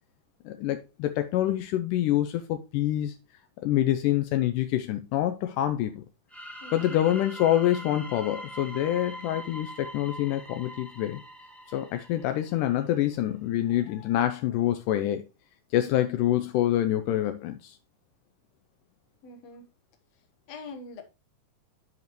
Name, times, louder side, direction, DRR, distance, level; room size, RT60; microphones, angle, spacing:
voice 1, 0.5-3.1 3.6-6.0 6.7-11.2 11.7-15.2 15.7-17.8, left 12 dB, 85° left, 1.9 m, -26 dB
sound 1, 6.3-12.9, equal, ahead, 0.4 m, -43 dB
voice 2, 6.6-7.0 15.7-16.1 19.2-19.7 20.5-21.0, left 2 dB, 60° left, 2.1 m, -43 dB
12.0 x 5.2 x 3.1 m
omnidirectional pair, 4.3 m